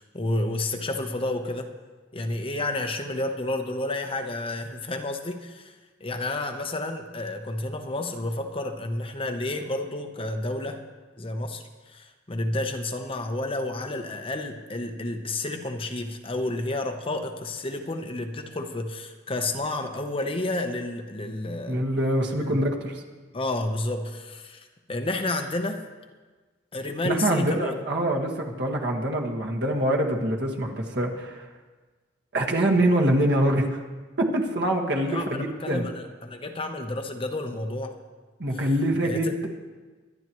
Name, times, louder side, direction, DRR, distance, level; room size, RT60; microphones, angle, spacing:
voice 1, 0.0-1.7 2.1-10.8 11.2-21.8 22.4-22.5 23.3-25.8 26.7-27.8 35.1-38.0 38.5-38.7 39.0-39.5, left 2 dB, 30° left, 5 dB, 0.9 m, -30 dB
voice 2, 21.7-23.0 27.0-31.5 32.3-33.8 34.2-35.8 38.4-39.5, right 1 dB, 65° right, 0 dB, 1.7 m, -25 dB
24.0 x 10.5 x 3.1 m, 1.3 s
head